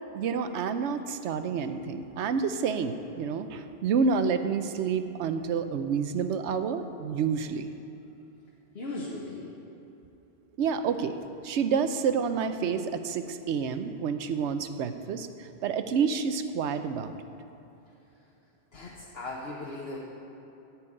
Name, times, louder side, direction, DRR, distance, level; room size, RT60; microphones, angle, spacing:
voice 1, 0.1-7.7 10.6-11.1 11.4-17.2, right 6 dB, 85° right, 9 dB, 0.9 m, -29 dB
voice 2, 8.7-9.5 18.7-20.0, left 2 dB, 60° left, -5 dB, 1.3 m, -37 dB
13.0 x 4.6 x 8.8 m, 2.9 s
omnidirectional pair, 1.1 m